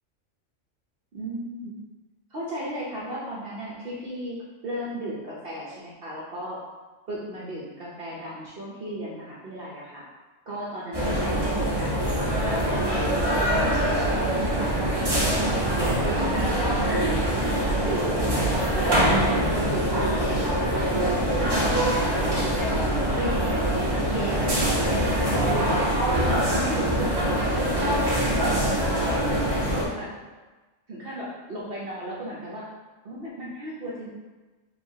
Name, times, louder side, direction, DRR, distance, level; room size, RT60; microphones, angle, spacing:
voice 1, 1.1-1.8 2.3-6.6 7.1-10.0 10.5-12.8 13.3-15.6 16.0-19.9 20.2-20.9 21.3-23.6 23.9-25.9 26.5-28.8 29.1-30.1 30.9-32.7 33.0-34.1, equal, 55° right, -6 dB, 0.8 m, -35 dB
sound 1, 10.9-29.8, right 1 dB, 25° right, 0.7 m, -24 dB
4.7 x 3.6 x 2.7 m, 1.2 s
omnidirectional pair, 1.4 m